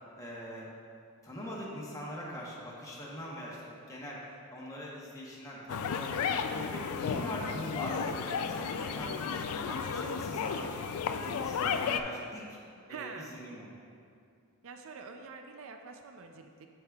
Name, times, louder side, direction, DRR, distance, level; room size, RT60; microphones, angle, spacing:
voice 1, 0.1-0.7 1.2-4.2 4.5-9.4 9.6-10.9 11.2-12.6 12.9-13.7, equal, 15° left, -5 dB, 0.9 m, -42 dB
sound 1, 5.7-12.0, left 6 dB, 70° left, 0.3 m, -33 dB
voice 2, 12.9-13.4 14.6-16.7, right 5 dB, 65° right, 5 dB, 0.4 m, -45 dB
7.7 x 7.3 x 2.3 m, 2.4 s
head